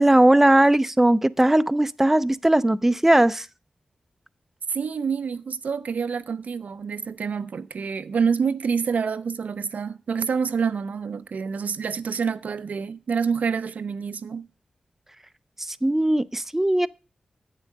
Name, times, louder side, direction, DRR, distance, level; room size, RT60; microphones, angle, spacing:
voice 1, 0.0-3.5 15.7-16.9, right 1 dB, 10° right, 0.4 m, -19 dB
voice 2, 4.7-14.5, right 6 dB, 80° right, 0.4 m, -27 dB
8.3 x 7.2 x 5.2 m
cardioid pair, 50°, 3 cm